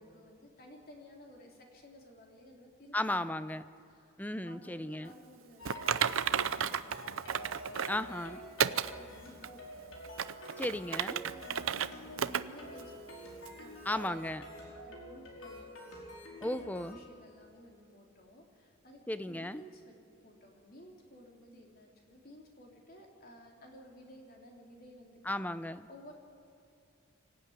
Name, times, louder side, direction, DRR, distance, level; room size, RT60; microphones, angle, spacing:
voice 1, 0.0-3.0 3.9-4.1 4.5-7.9 8.6-10.0 10.8-13.8 14.7-15.7 16.6-20.0 20.2-25.2 25.9-26.1, equal, 45° left, 1 dB, 3.6 m, -55 dB
voice 2, 2.9-3.6 4.2-5.1 7.9-8.4 10.6-11.2 13.9-14.4 16.4-17.0 19.1-19.6 25.3-25.9, left 1 dB, 10° left, 13 dB, 0.6 m, -35 dB
sound 1, 5.6-17.0, equal, 80° left, 4.9 m, -48 dB
Typing, 5.7-8.0 8.6-8.9 9.4-9.5 10.0-11.9 12.2-12.4 12.8-12.9 13.5-13.6, right 8 dB, 75° right, 0.7 m, -32 dB
25.0 x 15.0 x 9.5 m, 2.6 s
head